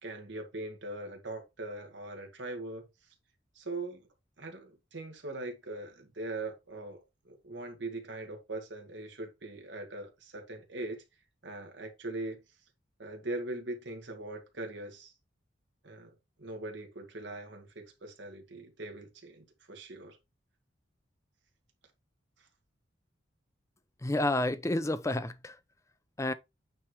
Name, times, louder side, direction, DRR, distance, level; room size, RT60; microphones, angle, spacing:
voice 1, 0.0-3.1 3.5-4.1 4.4-11.0 11.4-12.4 13.0-15.1 15.8-16.1 16.4-20.2 22.4-22.5, right 2 dB, 70° right, 1.9 m, -41 dB
voice 2, 24.0-25.6 26.2-26.3, left 1 dB, 15° left, 0.5 m, -30 dB
9.0 x 3.2 x 4.4 m
head